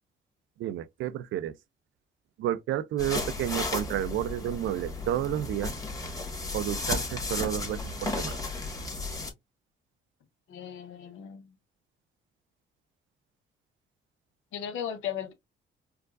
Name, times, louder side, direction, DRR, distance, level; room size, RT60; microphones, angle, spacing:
voice 1, 0.6-1.6 2.4-5.7 6.5-8.4, right 12 dB, 75° right, 0.5 m, -31 dB
sound 1, 3.0-9.3, left 2 dB, 15° left, 1.4 m, -34 dB
voice 2, 10.5-11.5 14.5-15.3, left 9 dB, 80° left, 0.9 m, -36 dB
4.6 x 2.4 x 2.4 m
cardioid pair, 90°, 20 cm